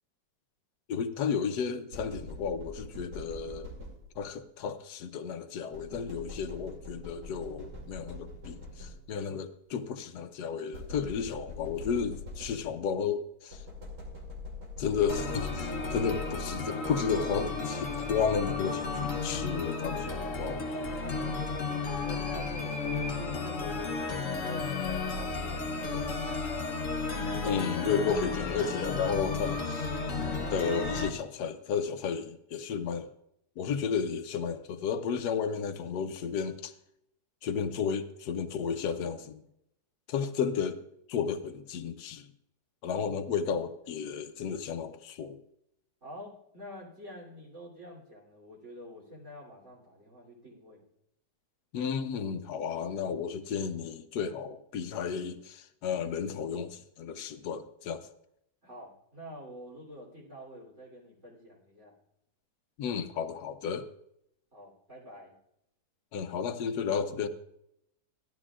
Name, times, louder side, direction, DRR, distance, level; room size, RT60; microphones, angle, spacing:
voice 1, 0.9-3.7 4.2-13.6 14.8-20.9 27.4-29.9 30.5-33.1 33.6-36.7 37.4-39.4 40.1-40.8 41.1-42.3 42.8-45.4 51.7-58.1 62.8-63.9 66.1-67.3, left 6 dB, 80° left, 8 dB, 1.3 m, -33 dB
sound 1, 1.9-4.4 5.7-9.3 10.7-12.9 13.5-16.6, left 2 dB, 80° right, 3.2 m, -43 dB
sound 2, 15.1-31.1, left 4 dB, 55° left, 1.4 m, -33 dB
voice 2, 21.0-21.7 22.0-26.2 46.0-50.8 58.6-62.0 64.5-65.3, equal, 45° right, -5 dB, 3.7 m, -48 dB
16.0 x 12.0 x 2.4 m, 0.78 s
omnidirectional pair, 1.7 m